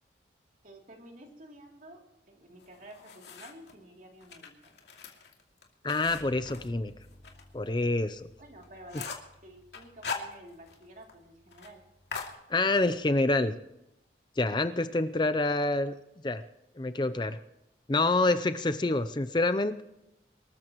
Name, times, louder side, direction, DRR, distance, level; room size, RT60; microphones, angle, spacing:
voice 1, 0.6-4.7 8.4-9.1 9.4-11.8 14.7-14.8, right 1 dB, 45° right, 1 dB, 3.1 m, -51 dB
sound 1, 2.6-3.7 4.2-7.4 7.8-7.9 8.3-8.4 8.6-9.3 9.7-10.8 11.1-11.2 11.5-11.7 12.1-13.0, left 5 dB, 65° left, 2.6 m, -41 dB
voice 2, 5.8-6.9 7.5-8.3 12.5-13.5 14.4-15.9 16.2-16.4 16.8-17.4 17.9-19.8, left 2 dB, 25° left, 11 dB, 0.5 m, -27 dB
Bass guitar, 6.1-12.3, left 1 dB, 5° right, 3.4 m, -57 dB
25.0 x 14.0 x 3.1 m, 0.87 s
head